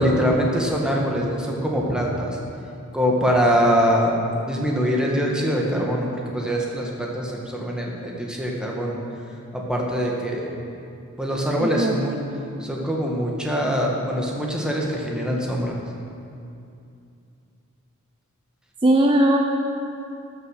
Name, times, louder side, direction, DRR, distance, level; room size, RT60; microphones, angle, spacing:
voice 1, 0.0-2.4 2.9-4.1 4.5-9.0 9.5-10.5 11.2-12.2 12.6-15.7, equal, 5° right, -2 dB, 1.5 m, -23 dB
voice 2, 11.6-12.0 18.8-19.4, right 1 dB, 25° right, 0 dB, 0.6 m, -18 dB
13.5 x 6.7 x 6.5 m, 2.6 s
head